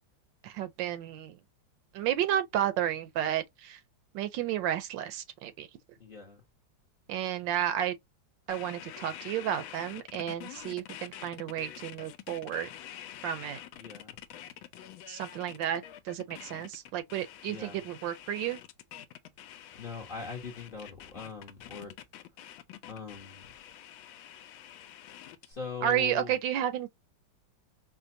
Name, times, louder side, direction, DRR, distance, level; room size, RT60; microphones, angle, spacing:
voice 1, 0.4-1.4 1.9-3.8 4.1-5.7 7.1-8.0 8.5-12.7 13.2-13.6 15.1-18.6 25.8-26.9, right 10 dB, 75° right, 1.2 m, -32 dB
voice 2, 6.0-6.4 13.8-14.2 17.5-17.8 19.7-21.9 22.9-23.5 25.4-26.4, left 5 dB, 40° left, 0.8 m, -41 dB
sound 1, 8.5-25.5, left 11 dB, 85° left, 1.3 m, -47 dB
5.1 x 2.2 x 2.6 m
omnidirectional pair, 2.1 m